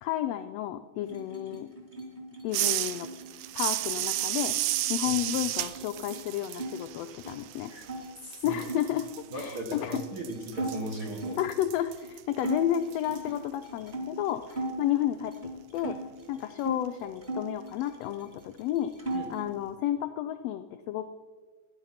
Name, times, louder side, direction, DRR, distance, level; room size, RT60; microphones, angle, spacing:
voice 1, 0.0-1.7 2.4-3.1 3.5-4.6 4.9-7.7 8.4-9.1 9.3-10.0 11.4-16.0 16.3-18.9 19.3-21.1, left 12 dB, 85° left, 9 dB, 1.4 m, -31 dB
sound 1, 1.0-6.7 7.0-8.0 8.6-11.5 12.0-12.1 12.4-14.8 15.2-16.8 17.2-18.3 18.6-19.5, right 2 dB, 20° right, 1.4 m, -39 dB
sound 2, 2.5-8.1 8.3-13.2, right 14 dB, 80° right, 1.5 m, -33 dB
voice 2, 8.2-8.7 9.3-11.4 19.1-19.3, right 1 dB, 50° right, -1 dB, 1.2 m, -38 dB
12.0 x 10.5 x 5.7 m, 1.5 s
omnidirectional pair, 3.5 m